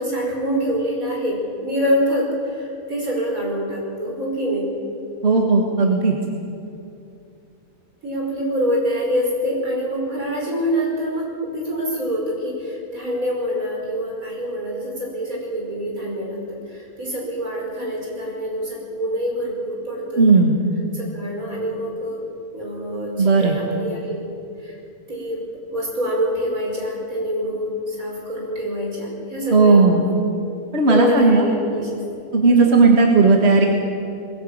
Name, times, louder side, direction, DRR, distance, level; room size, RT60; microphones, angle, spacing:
voice 1, 0.0-4.7 8.0-20.4 20.9-22.3 22.5-24.3 24.6-24.8 25.1-25.4 25.7-30.1 30.9-32.1 32.5-32.7, equal, 80° right, -2 dB, 5.7 m, -25 dB
voice 2, 5.2-6.2 20.2-20.5 23.2-23.5 29.5-30.0 30.7-31.5 32.3-33.7, right 3 dB, 50° right, 1 dB, 2.1 m, -15 dB
21.0 x 17.0 x 8.9 m, 2.6 s
omnidirectional pair, 1.4 m